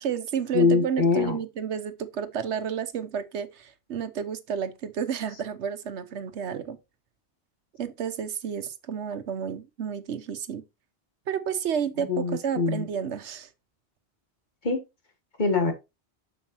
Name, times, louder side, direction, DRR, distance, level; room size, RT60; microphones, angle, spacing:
voice 1, 0.0-6.8 7.8-10.6 11.3-13.5, right 8 dB, 90° right, 1.1 m, -31 dB
voice 2, 0.5-1.4 12.0-12.8 14.6-14.8 15.4-15.7, left 4 dB, 45° left, 1.5 m, -23 dB
7.2 x 6.9 x 2.9 m
omnidirectional pair, 1.1 m